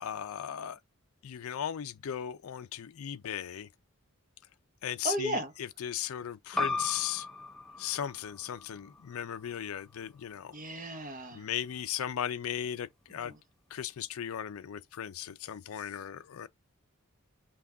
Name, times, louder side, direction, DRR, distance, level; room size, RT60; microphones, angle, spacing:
voice 1, 0.0-0.8 1.2-3.7 4.8-5.4 5.8-7.3 7.8-10.5 11.3-13.3 13.7-16.5, left 9 dB, 75° left, 0.4 m, -37 dB
voice 2, 5.0-5.5 6.5-6.7 10.5-11.5 13.1-13.4, right 1 dB, 35° right, 0.9 m, -35 dB
sound 1, 6.6-11.7, left 3 dB, ahead, 0.5 m, -39 dB
5.8 x 2.3 x 3.7 m
head